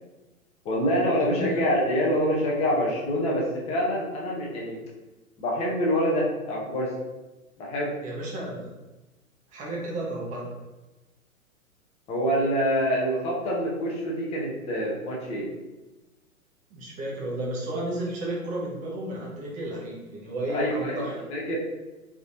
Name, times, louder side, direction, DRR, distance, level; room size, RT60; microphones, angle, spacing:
voice 1, 0.6-4.8 5.4-6.9 7.6-8.0 12.1-15.5 20.5-21.0 21.3-21.6, equal, 15° left, -3 dB, 0.7 m, -26 dB
voice 2, 1.2-1.6 8.0-8.7 9.5-10.5 16.7-21.2, right 1 dB, 20° right, -3 dB, 0.8 m, -32 dB
3.9 x 3.6 x 2.5 m, 1.1 s
figure-of-eight pair, 110°, 43 cm